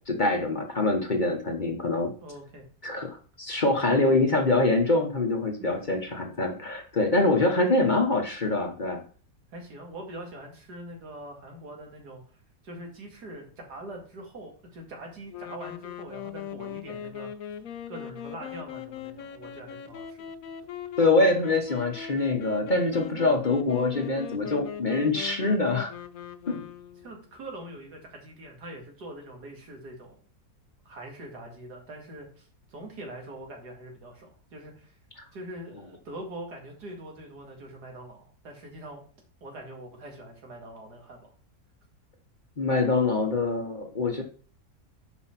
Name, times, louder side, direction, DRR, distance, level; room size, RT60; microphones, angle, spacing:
voice 1, 0.1-2.1 2.8-9.0 21.0-25.9 26.5-26.6 42.6-44.2, left 2 dB, 35° left, 4 dB, 1.1 m, -24 dB
voice 2, 2.2-2.6 5.6-5.7 9.5-12.2 12.6-17.3 17.9-20.3 27.0-30.1 30.8-35.0 35.3-39.0 39.4-41.3, right 1 dB, 90° right, 1 dB, 2.6 m, -43 dB
sound 1, 15.3-27.2, left 9 dB, 65° left, 1.1 m, -40 dB
6.2 x 5.5 x 5.8 m, 0.42 s
omnidirectional pair, 1.7 m